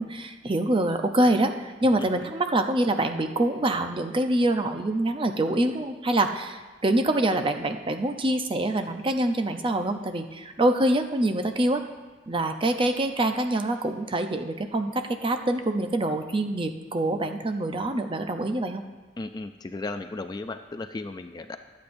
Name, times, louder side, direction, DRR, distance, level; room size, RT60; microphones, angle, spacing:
voice 1, 0.0-11.8 12.3-18.8, right 1 dB, 25° right, 6 dB, 0.6 m, -25 dB
voice 2, 19.2-21.6, left 2 dB, 20° left, 7 dB, 0.3 m, -35 dB
22.0 x 8.4 x 2.6 m, 1.3 s
head